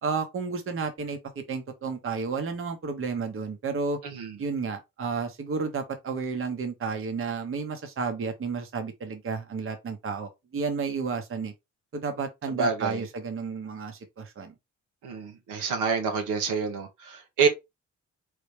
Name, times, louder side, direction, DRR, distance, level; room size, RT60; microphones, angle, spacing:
voice 1, 0.0-4.0 4.4-11.5 11.9-14.5, right 5 dB, 45° right, 1.1 m, -32 dB
voice 2, 4.0-4.3 12.5-13.0 15.0-17.5, right 5 dB, 90° right, 1.4 m, -27 dB
3.9 x 3.3 x 3.3 m
cardioid pair, 90°, 30 cm